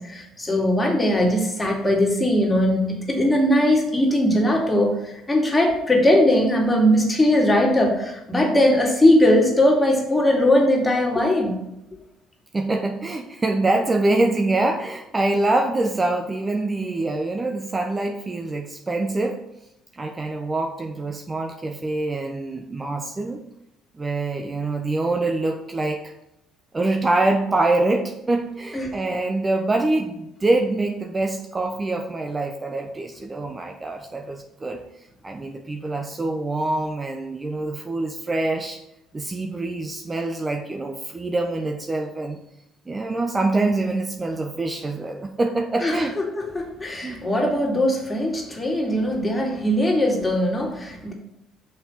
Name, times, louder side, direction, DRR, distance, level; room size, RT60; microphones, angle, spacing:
voice 1, 0.0-11.6 28.7-28.9 45.8-51.1, left 1 dB, 20° left, 0 dB, 2.5 m, -20 dB
voice 2, 12.5-19.4 19.9-23.4 23.9-26.0 26.7-34.8 35.2-38.8 39.1-42.4 42.9-46.2 47.0-47.2, right 2 dB, 25° right, 4 dB, 0.9 m, -25 dB
6.1 x 5.9 x 5.6 m, 0.87 s
supercardioid pair, 65°, 0 cm